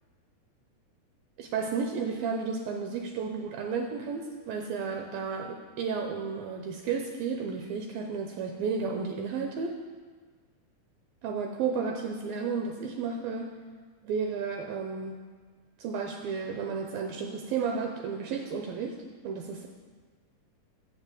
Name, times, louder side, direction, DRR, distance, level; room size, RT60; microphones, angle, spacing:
voice 1, 1.4-9.8 11.2-13.6 14.0-15.2 15.8-19.0 19.2-19.7, right 5 dB, 85° right, 3 dB, 2.1 m, -32 dB
9.0 x 7.5 x 7.4 m, 1.5 s
omnidirectional pair, 4.8 m